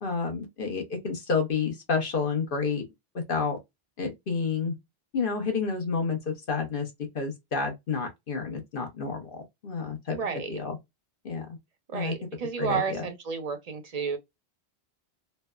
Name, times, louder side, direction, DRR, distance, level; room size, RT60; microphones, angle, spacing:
voice 1, 0.0-2.9 3.3-3.6 4.0-4.7 5.1-6.9 7.1-10.2 10.5-10.8 11.2-11.5 11.9-12.1 12.6-13.0, left 5 dB, 60° left, 1.1 m, -29 dB
voice 2, 10.1-10.6 11.9-14.2, right 6 dB, 45° right, 0.6 m, -31 dB
3.2 x 2.1 x 2.2 m
omnidirectional pair, 1.1 m